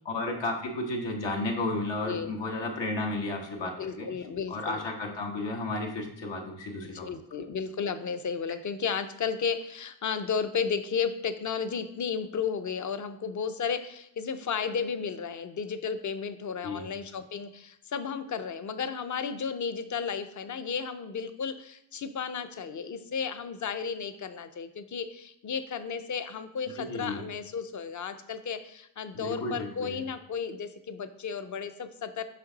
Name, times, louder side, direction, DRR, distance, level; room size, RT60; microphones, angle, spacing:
voice 1, 0.0-4.1 4.5-7.1 16.6-16.9 26.8-27.2 29.1-30.0, left 2 dB, 80° left, 1 dB, 1.5 m, -33 dB
voice 2, 3.8-4.8 6.9-32.2, left 6 dB, 45° left, 11 dB, 0.6 m, -33 dB
6.6 x 5.2 x 4.0 m, 0.78 s
wide cardioid pair, 115°, 43 cm